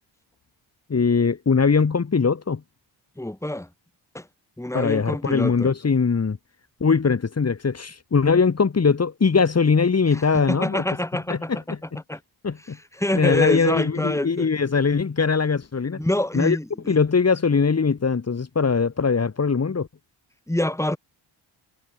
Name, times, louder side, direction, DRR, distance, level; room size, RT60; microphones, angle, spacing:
voice 1, 0.9-2.6 4.7-6.4 6.8-10.8 11.3-11.8 12.4-12.8 13.1-16.0 16.3-16.6 16.9-19.9, left 5 dB, 30° left, 5.0 m, -21 dB
voice 2, 3.2-3.7 4.1-4.3 4.6-5.7 10.1-11.8 12.1-12.2 12.6-14.5 16.0-17.0 20.5-21.0, left 1 dB, 5° left, 6.6 m, -26 dB
wide cardioid pair, 150°, 48 cm